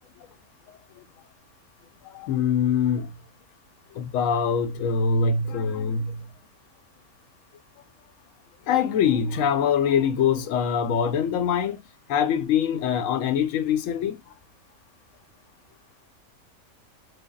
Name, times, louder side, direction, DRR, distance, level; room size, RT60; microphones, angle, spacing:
voice 1, 2.1-3.1 4.0-6.2 8.7-11.8 12.1-14.2, left 7 dB, 75° left, 1.0 m, -23 dB
3.4 x 2.1 x 3.6 m
omnidirectional pair, 1.4 m